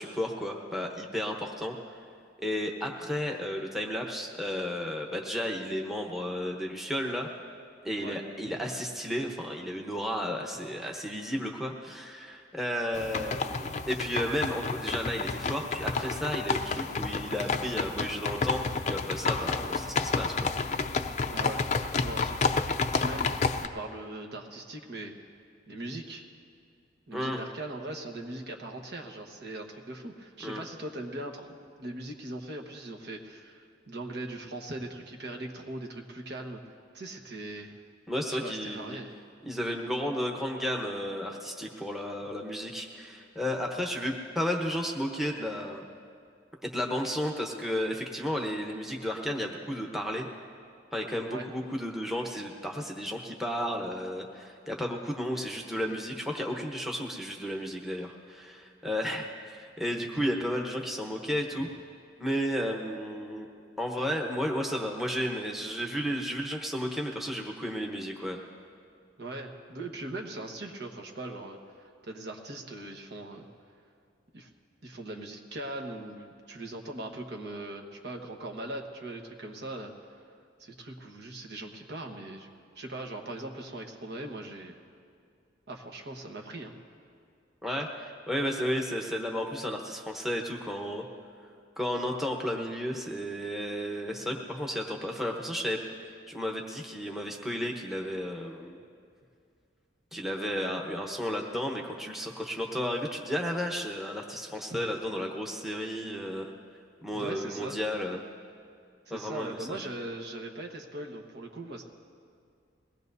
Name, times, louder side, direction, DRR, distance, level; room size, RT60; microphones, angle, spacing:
voice 1, 0.0-2.0 2.4-7.3 7.8-20.5 27.1-27.4 30.4-30.6 38.1-39.0 39.5-45.8 46.6-50.3 50.9-61.7 62.2-68.4 87.6-91.0 91.8-95.8 96.3-98.8 100.1-106.5 107.0-108.2 109.1-109.8, equal, ahead, 1 dB, 1.0 m, -33 dB
sound 1, 12.9-23.7, left 4 dB, 40° left, 0.5 m, -30 dB
voice 2, 21.3-21.6 22.0-23.3 23.6-25.1 25.7-26.2 27.1-36.6 36.9-37.8 38.3-39.1 51.3-51.4 60.3-60.4 69.2-71.6 72.0-73.5 74.3-74.5 74.8-79.9 80.6-82.5 82.7-84.8 85.7-86.7 104.7-104.8 107.1-107.8 109.1-111.8, right 1 dB, 60° right, 2 dB, 1.3 m, -40 dB
22.0 x 18.0 x 2.7 m, 2.3 s
head